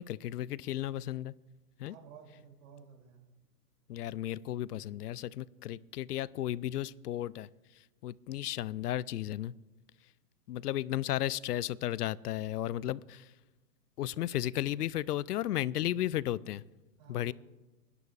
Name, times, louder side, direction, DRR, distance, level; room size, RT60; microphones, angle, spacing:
voice 1, 0.0-1.3 1.8-1.9 3.9-7.5 8.0-9.5 10.5-13.3 14.0-16.6 17.1-17.3, left 13 dB, 75° left, 22 dB, 0.5 m, -34 dB
voice 2, 1.8-3.4 14.1-14.3 17.0-17.3, right 7 dB, 55° right, 2 dB, 3.1 m, -54 dB
27.5 x 11.0 x 2.5 m, 1.1 s
hypercardioid pair, 120°, 48 cm